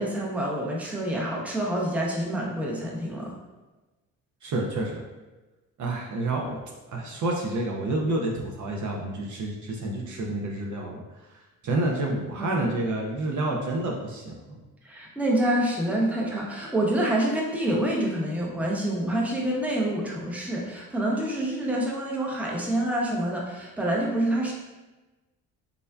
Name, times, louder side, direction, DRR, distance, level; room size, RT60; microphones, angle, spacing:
voice 1, 0.0-3.3 12.4-12.6 14.8-24.5, right 1 dB, 5° right, -2 dB, 0.6 m, -27 dB
voice 2, 4.4-5.0 5.8-6.6 6.9-11.0 11.6-14.6, right 2 dB, 45° right, 0 dB, 0.5 m, -29 dB
3.5 x 2.1 x 2.3 m, 1.1 s
hypercardioid pair, 50°, 41 cm